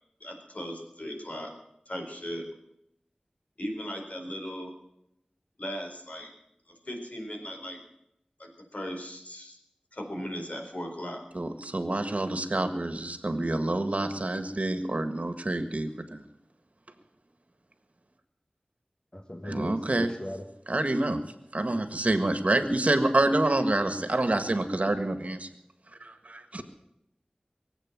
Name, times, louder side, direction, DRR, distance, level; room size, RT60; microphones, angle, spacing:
voice 1, 0.2-1.5 1.9-2.4 3.6-4.7 5.6-6.3 6.7-7.8 8.4-9.6 9.9-11.2, equal, 65° left, 2 dB, 4.3 m, -37 dB
voice 2, 11.3-16.2 19.4-20.2 20.7-21.2 21.5-25.5 26.0-26.6, right 2 dB, 60° right, 8 dB, 1.6 m, -27 dB
voice 3, 19.1-20.4, left 1 dB, 35° left, 3 dB, 1.6 m, -38 dB
22.5 x 8.2 x 7.4 m, 0.82 s
wide cardioid pair, 45°, 3 cm